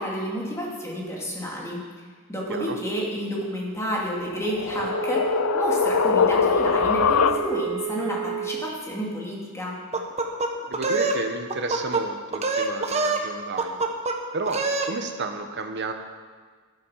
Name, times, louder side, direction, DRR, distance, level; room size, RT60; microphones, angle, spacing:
voice 1, 0.0-1.8 2.3-9.8, equal, 15° left, -4 dB, 2.7 m, -30 dB
sound 1, 4.1-7.8, left 6 dB, 65° left, 0.5 m, -23 dB
Wind instrument woodwind instrument, 4.6-8.8, right 10 dB, 85° right, 1.1 m, -31 dB
sound 2, 9.9-11.2 11.5-12.0 12.3-13.3 13.6-14.2 14.5-14.9, right 3 dB, 30° right, 1.1 m, -25 dB
voice 2, 10.7-13.9 14.3-15.9, right 3 dB, 50° right, 6 dB, 1.2 m, -32 dB
12.5 x 11.5 x 5.8 m, 1.6 s
head